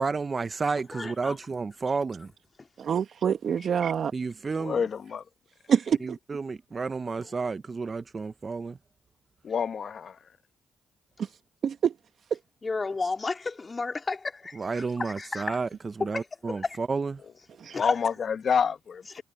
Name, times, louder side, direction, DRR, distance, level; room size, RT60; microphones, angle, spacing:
voice 1, 0.0-2.3 4.1-4.8 6.0-8.8 14.6-15.7 16.0-17.1, right 4 dB, 40° right, 1.0 m, -31 dB
voice 2, 0.9-1.4 2.6-2.7 12.6-15.6 16.0-16.8 17.7-18.0 19.2-19.3, left 3 dB, 35° left, 3.0 m, -32 dB
voice 3, 2.8-4.1 5.7-6.2 11.6-11.9 12.3-12.4 17.6-17.8, right 7 dB, 60° right, 1.9 m, -26 dB
voice 4, 4.6-5.2 9.4-10.2 17.7-19.2, left 6 dB, 55° left, 2.0 m, -28 dB
supercardioid pair, 50°, 0 cm